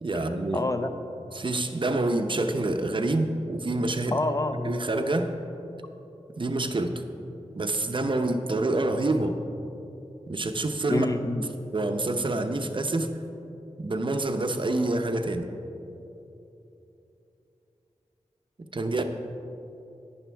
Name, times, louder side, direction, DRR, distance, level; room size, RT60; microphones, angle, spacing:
voice 1, 0.0-0.6 1.3-4.2 4.6-5.3 6.4-6.9 7.5-9.4 10.3-11.1 11.7-13.1 13.8-15.5 18.7-19.0, right 2 dB, 45° right, 6 dB, 0.7 m, -27 dB
voice 2, 0.5-0.9 4.1-4.8 10.9-11.4, left 2 dB, 30° left, 8 dB, 0.7 m, -27 dB
11.0 x 9.9 x 3.4 m, 3.0 s
cardioid pair, 50°, 12 cm